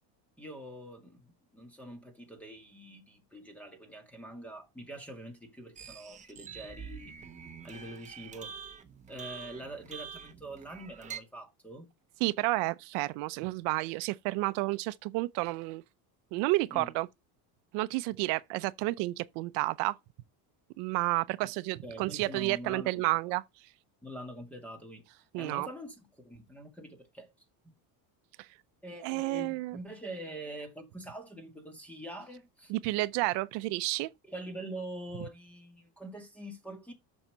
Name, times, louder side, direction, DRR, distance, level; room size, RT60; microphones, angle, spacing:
voice 1, 0.4-7.1 7.6-8.6 9.1-11.9 16.7-16.9 21.4-21.5 21.8-23.0 24.0-25.0 25.3-27.3 27.6-27.7 28.8-32.7 34.3-36.9, right 1 dB, 5° left, 1.9 m, -44 dB
sound 1, 5.8-11.2, right 7 dB, 15° right, 1.0 m, -46 dB
voice 2, 12.2-15.8 16.3-17.1 17.7-20.0 20.8-23.4 25.3-25.7 28.4-28.5 29.0-29.8 32.7-34.1, right 21 dB, 75° right, 0.7 m, -31 dB
7.3 x 6.5 x 6.7 m
cardioid pair, 175°, 42 cm